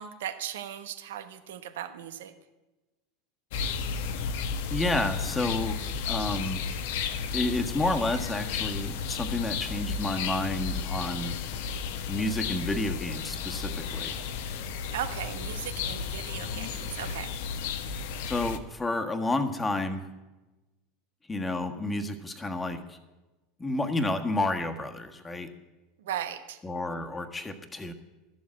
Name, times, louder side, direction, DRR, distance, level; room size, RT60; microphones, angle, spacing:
voice 1, 0.0-2.3 14.9-17.4 26.0-26.6, right 10 dB, 70° right, 9 dB, 1.1 m, -37 dB
sound 1, 3.5-18.6, left 5 dB, 60° left, 0.9 m, -33 dB
voice 2, 4.7-6.6 7.3-11.4 12.1-14.2 18.3-20.1 21.3-23.0 23.6-25.5 26.6-27.9, left 2 dB, 15° left, 6 dB, 1.4 m, -30 dB
13.0 x 7.3 x 8.7 m, 1.1 s
figure-of-eight pair, 80°, 0 cm